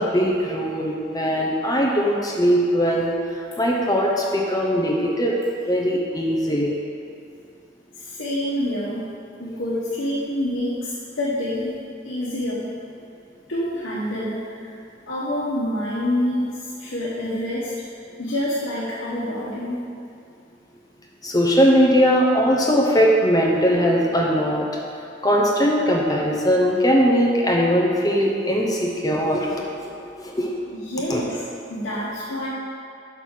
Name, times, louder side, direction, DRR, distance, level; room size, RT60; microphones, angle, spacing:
voice 1, 0.0-3.1 3.6-5.3 5.7-6.8 21.2-24.7 25.2-29.5 29.8-29.9 30.2-30.5 31.1-31.2, equal, 20° left, -1 dB, 0.8 m, -20 dB
voice 2, 8.0-9.1 9.4-11.8 12.0-12.7 13.5-14.7 15.1-17.7 18.2-19.8 30.8-31.4 31.7-32.5, left 1 dB, 65° left, -9 dB, 1.3 m, -27 dB
5.9 x 5.5 x 6.4 m, 2.6 s
head